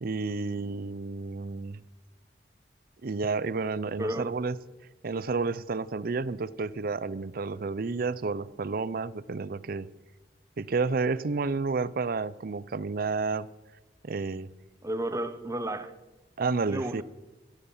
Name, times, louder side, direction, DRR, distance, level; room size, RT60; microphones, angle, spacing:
voice 1, 0.0-1.8 3.0-4.6 5.0-9.9 10.6-13.5 14.0-14.5 16.4-17.0, right 4 dB, 55° right, 0.5 m, -30 dB
voice 2, 4.0-4.4 14.8-15.9 16.7-17.0, right 1 dB, 20° right, 0.9 m, -32 dB
17.0 x 14.0 x 5.5 m
head